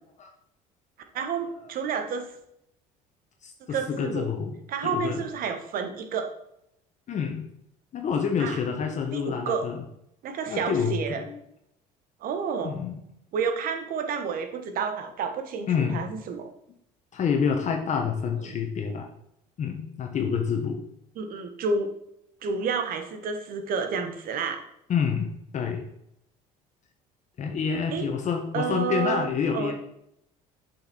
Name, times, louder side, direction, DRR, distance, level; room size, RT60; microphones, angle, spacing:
voice 1, 1.1-2.3 3.7-4.3 4.7-6.3 8.4-8.6 9.1-9.7 10.2-11.2 12.2-12.7 13.3-16.5 18.4-18.5 21.1-21.9 22.4-24.6 27.9-28.1 28.5-29.3 29.5-29.7, right 5 dB, 60° right, 6 dB, 1.3 m, -30 dB
voice 2, 3.4-5.2 7.1-7.5 7.9-9.8 10.5-11.4 12.6-13.0 15.7-16.0 17.1-19.1 19.6-20.8 24.9-25.9 27.4-29.7, left 6 dB, 45° left, 3 dB, 1.1 m, -28 dB
7.1 x 5.7 x 4.4 m, 0.78 s
supercardioid pair, 90°, 17 cm